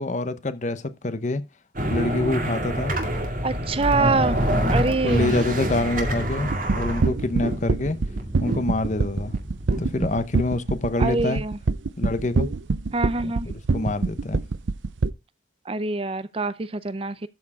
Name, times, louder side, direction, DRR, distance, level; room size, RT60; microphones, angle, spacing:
voice 1, 0.0-1.4 1.9-2.9 4.0-8.0 8.4-9.3 9.8-11.4 12.0-12.5 13.2-13.3 13.7-14.4, left 2 dB, 40° left, 0.8 m, -26 dB
sound 1, 1.8-10.2, right 1 dB, 45° right, 2.1 m, -27 dB
voice 2, 3.4-4.4 4.7-5.3 11.0-11.6 12.9-13.5 15.7-17.3, right 3 dB, 30° right, 0.5 m, -25 dB
sound 2, 6.5-15.1, right 3 dB, 90° right, 0.6 m, -24 dB
13.0 x 4.5 x 4.7 m
head